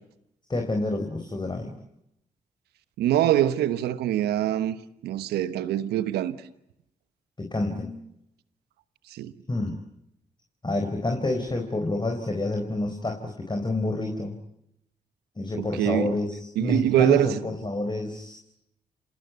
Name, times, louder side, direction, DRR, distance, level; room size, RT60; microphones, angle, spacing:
voice 1, 0.5-1.7 7.4-8.0 9.5-9.8 10.6-14.3 15.4-18.4, left 2 dB, 30° left, 4.5 m, -28 dB
voice 2, 3.0-4.8 5.0-6.3 9.1-9.3 15.6-16.1 16.6-17.4, right 12 dB, 85° right, 1.2 m, -24 dB
27.5 x 19.0 x 9.4 m
supercardioid pair, 45°, 16 cm